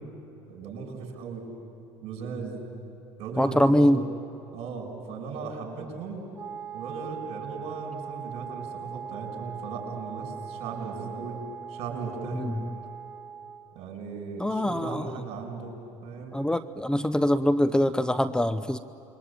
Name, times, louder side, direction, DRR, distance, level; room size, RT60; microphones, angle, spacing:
voice 1, 0.5-1.4 2.0-2.6 3.2-4.0 4.5-6.2 6.7-11.4 11.7-12.6 13.7-15.7 16.0-16.4, right 5 dB, 65° right, 2 dB, 7.2 m, -37 dB
voice 2, 3.4-4.0 12.3-12.8 14.4-15.1 16.3-18.8, left 1 dB, 5° left, 12 dB, 0.8 m, -24 dB
Wind instrument woodwind instrument, 6.3-13.8, right 7 dB, 25° right, 1.7 m, -40 dB
28.0 x 23.0 x 8.9 m, 2.8 s
supercardioid pair, 90°, 11 cm